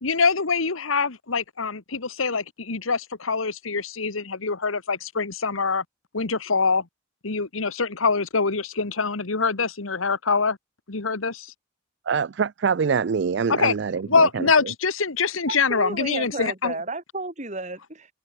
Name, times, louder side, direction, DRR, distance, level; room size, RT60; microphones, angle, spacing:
voice 1, 0.0-5.8 6.1-6.9 7.2-10.6 10.9-11.5 13.5-13.7 14.1-16.8, left 4 dB, 90° left, 1.6 m, -24 dB
voice 2, 12.1-14.5, right 6 dB, 60° right, 0.4 m, -24 dB
voice 3, 15.5-18.1, right 2 dB, 35° right, 3.5 m, -32 dB
head